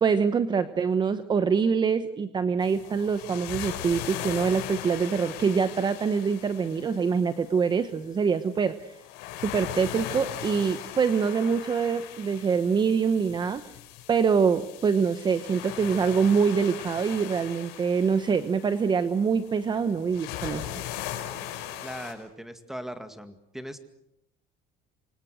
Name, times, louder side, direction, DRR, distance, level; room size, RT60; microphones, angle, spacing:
voice 1, 0.0-8.9 9.4-13.6 14.1-20.7, right 6 dB, 25° right, 11 dB, 1.0 m, -25 dB
sound 1, 2.6-22.1, left 11 dB, 80° left, 5.6 m, -39 dB
voice 2, 21.8-23.8, equal, ahead, 9 dB, 2.1 m, -39 dB
27.5 x 24.5 x 6.5 m, 0.81 s
cardioid pair, 135°, 17 cm